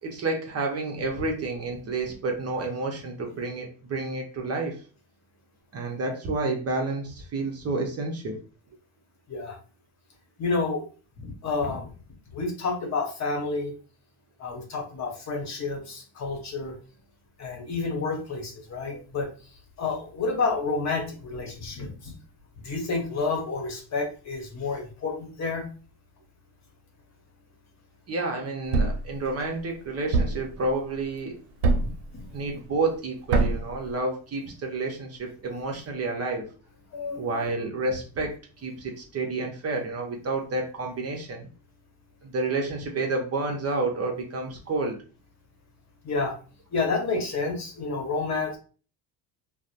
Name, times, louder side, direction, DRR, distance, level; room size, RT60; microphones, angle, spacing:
voice 1, 0.0-4.8 5.7-8.4 28.1-31.3 32.3-36.5 37.1-41.5 42.2-45.0, right 3 dB, 35° right, 1 dB, 0.7 m, -30 dB
voice 2, 10.4-10.8 11.2-11.9 12.3-13.7 14.4-16.8 17.4-19.3 19.8-22.1 22.6-25.7 31.8-31.9 36.9-37.5 46.0-46.3 46.7-48.6, left 4 dB, 40° left, 2 dB, 0.9 m, -29 dB
Thump thud, 28.7-29.1 30.1-30.5 31.6-32.0 33.3-33.7, right 3 dB, 85° right, 0.6 m, -22 dB
2.8 x 2.0 x 2.5 m, 0.38 s
supercardioid pair, 90°, 44 cm